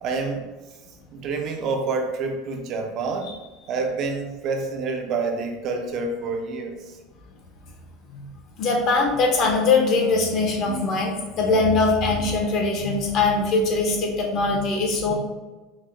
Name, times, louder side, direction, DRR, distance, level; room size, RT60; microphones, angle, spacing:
voice 1, 0.0-0.5 1.1-3.3 3.7-6.8, right 4 dB, 40° right, 3 dB, 0.4 m, -27 dB
voice 2, 8.6-15.1, left 3 dB, 40° left, 1 dB, 0.6 m, -21 dB
4.0 x 2.1 x 2.4 m, 1.2 s
cardioid pair, 160°, 0 cm